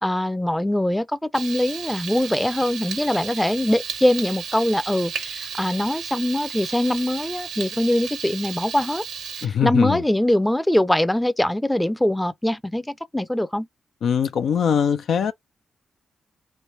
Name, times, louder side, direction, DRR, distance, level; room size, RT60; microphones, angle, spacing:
voice 1, 0.0-9.0 9.4-13.7, left 1 dB, 10° left, 0.5 m, -22 dB
Frying (food), 1.3-9.5, right 6 dB, 85° right, 0.8 m, -34 dB
voice 2, 9.4-10.0 14.0-15.3, left 7 dB, 75° left, 0.4 m, -21 dB
3.3 x 3.0 x 2.7 m
supercardioid pair, 50°, 0 cm